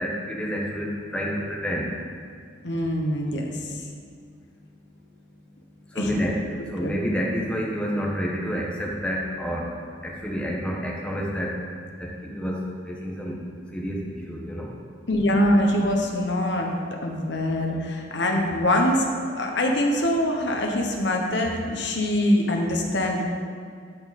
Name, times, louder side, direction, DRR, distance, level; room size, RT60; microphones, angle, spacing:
voice 1, 0.0-2.0 5.9-9.8 10.0-11.6 12.0-13.4 13.7-14.7, equal, 5° left, -3 dB, 1.2 m, -29 dB
voice 2, 2.6-3.5 5.9-6.1 6.8-6.9 15.1-16.7 17.0-19.1 19.3-23.2, left 1 dB, 65° left, 2 dB, 1.1 m, -23 dB
12.5 x 5.2 x 4.3 m, 2.2 s
head